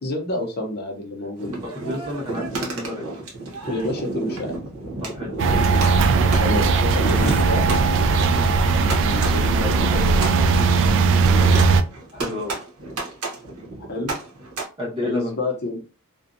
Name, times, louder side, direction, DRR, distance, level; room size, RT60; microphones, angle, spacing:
voice 1, 0.0-1.5 3.7-4.5 6.3-7.7 9.0-11.5 13.9-14.2 15.0-15.8, left 2 dB, 45° left, 2 dB, 0.6 m, -29 dB
sound 1, 1.4-14.6, right 2 dB, 90° right, 0.9 m, -32 dB
voice 2, 1.6-3.1 5.0-5.3 8.3-8.7 12.1-12.6 14.8-15.4, left 1 dB, 25° right, -4 dB, 1.1 m, -31 dB
sound 2, 5.4-11.8, right 4 dB, 60° right, 0.3 m, -18 dB
sound 3, 6.9-11.3, equal, 5° left, 0.6 m, -34 dB
2.6 x 2.2 x 2.5 m, 0.33 s
head